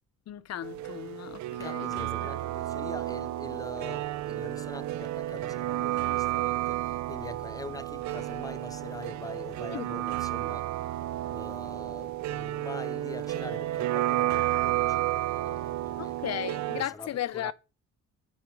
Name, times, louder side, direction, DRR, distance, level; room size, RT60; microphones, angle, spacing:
voice 1, 0.3-2.4 9.7-9.9 16.0-17.5, left 11 dB, 60° left, 0.6 m, -36 dB
sound 1, 0.6-16.8, right 15 dB, 70° right, 0.5 m, -31 dB
voice 2, 1.5-16.2 16.8-17.5, left 3 dB, 15° left, 0.3 m, -44 dB
sound 2, 3.4-12.6, right 5 dB, 30° right, 1.2 m, -58 dB
9.4 x 5.0 x 4.6 m
cardioid pair, 90°, 30 cm